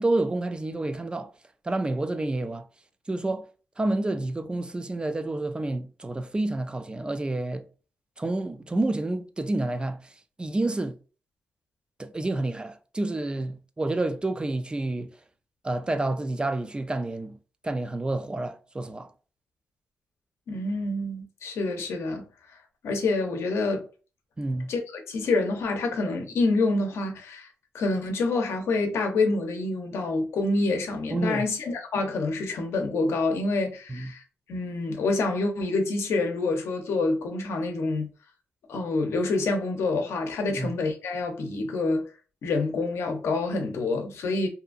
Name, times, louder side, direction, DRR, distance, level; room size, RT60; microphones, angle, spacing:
voice 1, 0.0-1.3 1.6-2.7 3.1-3.4 3.8-7.7 8.2-10.1 10.4-11.0 12.0-15.1 15.6-17.4 17.6-19.1 24.4-24.7 31.1-31.5 33.9-34.1 40.5-40.7, right 2 dB, 20° right, 0.3 m, -29 dB
voice 2, 20.5-22.6 22.8-23.9 24.7-27.5 27.7-34.2 34.5-38.1 38.7-42.0 42.4-44.5, left 3 dB, 85° left, 0.6 m, -27 dB
2.7 x 2.4 x 2.4 m
cardioid pair, 80°, 4 cm